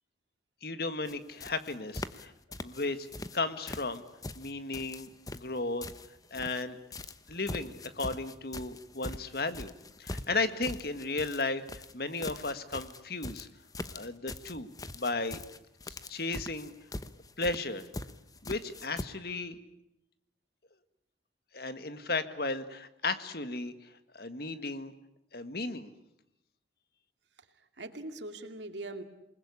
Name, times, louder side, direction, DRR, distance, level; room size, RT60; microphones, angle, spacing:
voice 1, 0.6-2.3 2.6-3.1 3.3-4.0 4.4-5.9 6.3-6.8 7.3-9.7 10.0-13.5 13.9-14.7 14.9-15.4 15.9-16.7 17.4-17.8 18.4-19.6 21.5-23.7 24.1-24.9 25.3-25.9, left 3 dB, 60° left, 10 dB, 1.9 m, -34 dB
sound 1, 1.1-1.2 1.4-2.3 2.5-3.4 3.7-6.6 6.9-19.0, left 2 dB, 20° left, 1.0 m, -42 dB
voice 2, 27.4-29.0, right 2 dB, 85° right, 6 dB, 2.4 m, -42 dB
28.0 x 20.5 x 9.8 m, 0.83 s
head